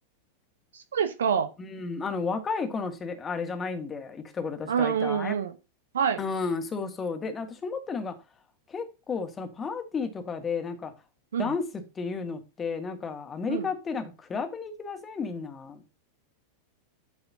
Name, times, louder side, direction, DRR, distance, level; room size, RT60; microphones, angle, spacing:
voice 1, 0.9-1.5 4.7-5.5 5.9-6.2 11.3-11.5 13.5-13.6, right 7 dB, 65° right, 0.9 m, -26 dB
voice 2, 1.6-5.4 6.2-8.1 8.7-10.9 11.4-11.6 11.9-15.8, left 5 dB, 20° left, 1.7 m, -32 dB
12.5 x 4.8 x 2.7 m
figure-of-eight pair, 90°, 0 cm